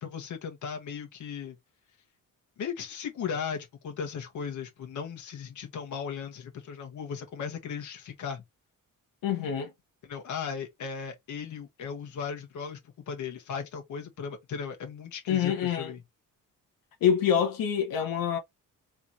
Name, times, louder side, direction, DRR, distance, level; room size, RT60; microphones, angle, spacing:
voice 1, 0.0-1.6 2.6-8.4 10.0-12.8 13.1-16.0, left 6 dB, 60° left, 1.5 m, -37 dB
voice 2, 9.2-9.7 15.3-15.9 17.0-18.4, left 8 dB, 85° left, 1.1 m, -26 dB
3.5 x 3.0 x 4.1 m
wide cardioid pair, 170°, 33 cm